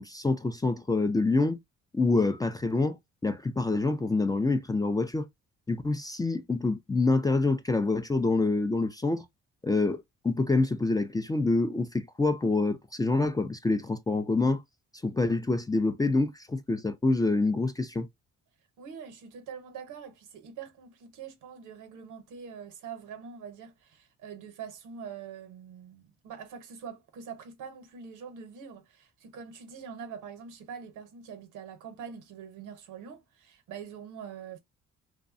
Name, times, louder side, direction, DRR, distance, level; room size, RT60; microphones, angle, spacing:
voice 1, 0.0-1.6 1.9-3.0 3.2-5.3 5.7-9.2 9.6-14.6 15.0-18.1, left 3 dB, 15° left, 0.3 m, -26 dB
voice 2, 18.8-34.6, right 7 dB, 85° right, 0.8 m, -44 dB
2.6 x 2.1 x 2.4 m
cardioid pair, 90°, 30 cm